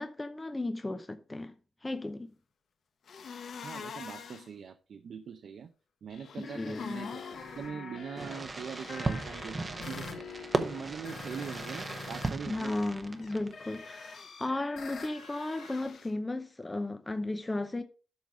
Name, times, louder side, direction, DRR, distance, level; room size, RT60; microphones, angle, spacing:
voice 1, 0.0-1.6 1.8-2.3 6.5-7.0 12.5-17.8, left 2 dB, 15° left, 0.7 m, -35 dB
sound 1, 3.1-4.5 6.3-7.7 13.5-14.3 15.1-16.1, left 6 dB, 65° left, 1.0 m, -45 dB
voice 2, 3.6-5.7 6.0-12.7, right 7 dB, 65° right, 0.6 m, -42 dB
sound 2, 6.1-12.3 12.6-15.9, left 3 dB, 80° left, 4.0 m, -45 dB
Fireworks, 8.2-13.7, right 3 dB, 25° right, 0.9 m, -36 dB
12.0 x 4.0 x 5.0 m
wide cardioid pair, 160°, 0 cm